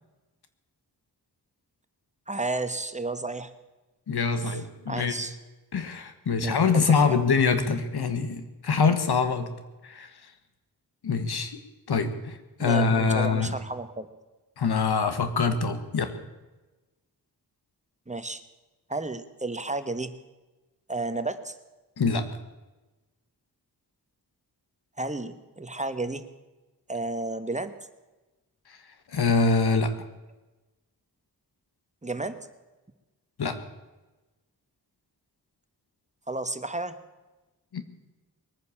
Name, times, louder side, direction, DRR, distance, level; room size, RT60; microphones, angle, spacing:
voice 1, 2.3-3.5 4.3-5.4 6.4-6.6 6.9-7.2 12.6-14.1 18.1-18.4 18.9-20.1 20.9-21.6 25.0-26.2 26.9-27.7 32.0-32.4 36.3-37.0, right 2 dB, 20° right, 11 dB, 1.2 m, -32 dB
voice 2, 4.1-5.1 5.7-9.5 9.8-10.1 11.0-11.6 11.9-13.5 14.6-16.1 22.0-22.3 29.1-29.9 33.4-33.6 37.7-37.8, left 4 dB, 90° left, 9 dB, 1.5 m, -24 dB
21.0 x 9.6 x 7.2 m, 1.1 s
wide cardioid pair, 70°, 38 cm